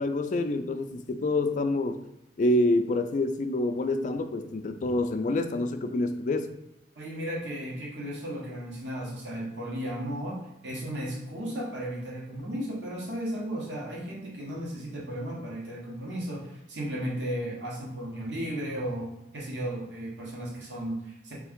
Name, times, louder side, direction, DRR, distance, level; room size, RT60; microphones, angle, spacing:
voice 1, 0.0-2.0 2.4-6.5, left 2 dB, 45° left, 8 dB, 0.3 m, -27 dB
voice 2, 6.9-19.1 19.3-21.3, equal, 85° right, -4 dB, 1.1 m, -35 dB
3.5 x 3.3 x 3.6 m, 0.87 s
head